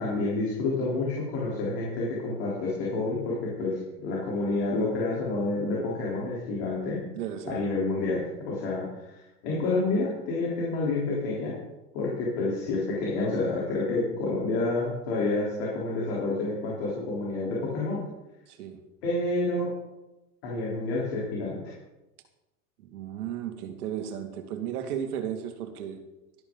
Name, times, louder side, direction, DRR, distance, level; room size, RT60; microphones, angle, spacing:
voice 1, 0.0-7.0 7.5-11.5 11.9-18.0 19.0-19.7 20.4-21.6, left 2 dB, 40° left, -5 dB, 3.8 m, -29 dB
voice 2, 7.1-7.6 18.5-18.8 22.8-26.0, right 9 dB, 70° right, 5 dB, 2.2 m, -34 dB
13.0 x 12.5 x 3.9 m, 1.0 s
supercardioid pair, 180°, 47 cm